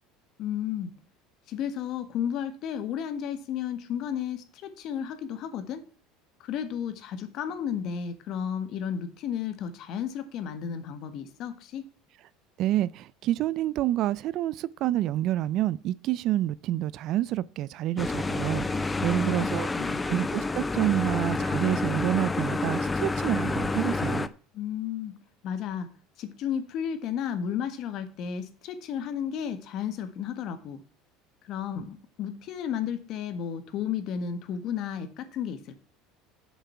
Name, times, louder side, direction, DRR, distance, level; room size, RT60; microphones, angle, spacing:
voice 1, 0.4-0.9 1.5-5.8 6.4-11.8 19.0-20.0 24.5-25.1 25.4-25.9 26.2-30.8 31.4-35.8, left 8 dB, 55° left, 1.6 m, -33 dB
voice 2, 12.6-19.7 20.1-24.3, right 13 dB, 55° right, 0.4 m, -28 dB
sound 1, 18.0-24.3, left 3 dB, 15° left, 0.6 m, -29 dB
7.4 x 7.0 x 5.7 m
supercardioid pair, 130°, 0 cm